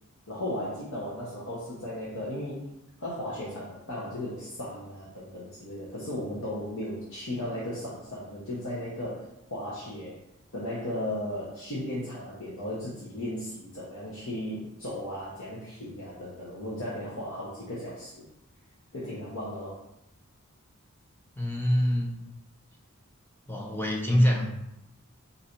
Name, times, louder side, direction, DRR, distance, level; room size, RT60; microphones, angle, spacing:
voice 1, 0.3-2.7 3.0-10.2 10.5-18.2 18.9-19.8, left 1 dB, 70° left, -6 dB, 0.9 m, -36 dB
voice 2, 21.4-22.1 23.5-24.5, equal, 10° left, -1 dB, 0.6 m, -25 dB
4.0 x 2.6 x 4.3 m, 0.85 s
head